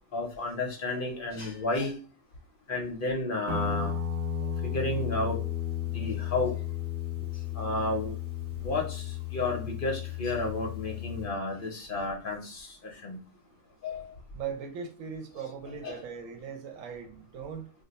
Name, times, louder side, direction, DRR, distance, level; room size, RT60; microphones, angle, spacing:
voice 1, 0.1-1.9 2.7-3.9 4.7-5.4 5.9-6.5 7.6-8.1 8.6-13.2 13.8-14.2 15.8-16.0, left 2 dB, 55° left, 0.7 m, -32 dB
Guitar, 3.5-11.3, left 9 dB, 55° right, 1.0 m, -34 dB
voice 2, 14.3-17.7, right 6 dB, 85° right, 1.1 m, -39 dB
2.5 x 2.2 x 4.0 m
omnidirectional pair, 1.3 m